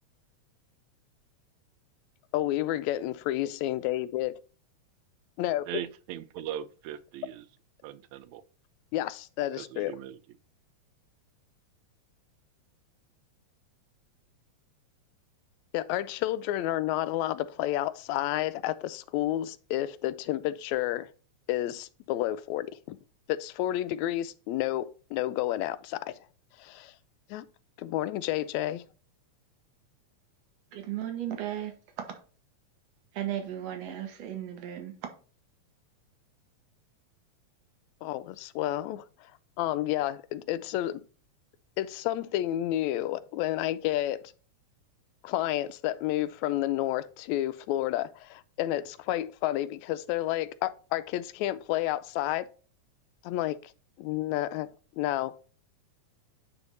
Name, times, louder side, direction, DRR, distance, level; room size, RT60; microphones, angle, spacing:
voice 1, 2.3-4.3 5.4-5.7 8.9-9.9 15.7-21.1 21.5-23.0 23.3-26.2 26.6-26.9 27.3-27.5 27.8-28.8 38.0-39.3 39.6-41.0 41.8-44.2 45.2-52.5 53.2-53.7 54.0-54.7 55.0-55.3, left 14 dB, 80° left, 1.8 m, -30 dB
voice 2, 5.7-7.5 7.8-8.4 9.6-10.2, right 11 dB, 80° right, 1.8 m, -39 dB
voice 3, 30.7-31.7 33.1-34.9, right 11 dB, 65° right, 2.3 m, -35 dB
9.7 x 3.5 x 4.0 m
omnidirectional pair, 3.3 m